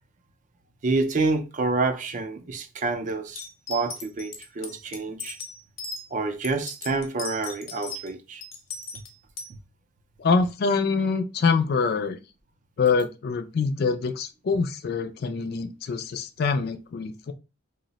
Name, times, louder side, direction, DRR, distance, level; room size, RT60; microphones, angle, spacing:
voice 1, 0.8-3.4 3.7-5.4 6.1-8.4, right 3 dB, 35° right, 0.4 m, -28 dB
sound 1, 3.4-6.0 6.4-8.1 8.4-9.5, left 3 dB, 65° left, 0.8 m, -37 dB
voice 2, 10.2-12.2 12.8-17.3, left 4 dB, 50° left, 0.3 m, -25 dB
2.7 x 2.0 x 3.9 m
head